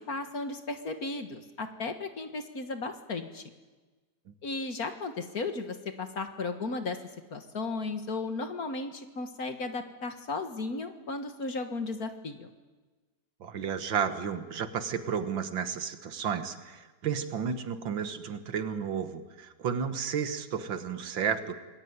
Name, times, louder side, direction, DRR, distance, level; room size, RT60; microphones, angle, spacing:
voice 1, 0.1-3.4 4.4-7.0 7.3-12.5, left 3 dB, 50° left, 7 dB, 1.9 m, -35 dB
voice 2, 13.4-21.6, right 7 dB, 70° right, 9 dB, 2.1 m, -32 dB
27.0 x 20.0 x 9.6 m, 1.3 s
omnidirectional pair, 2.2 m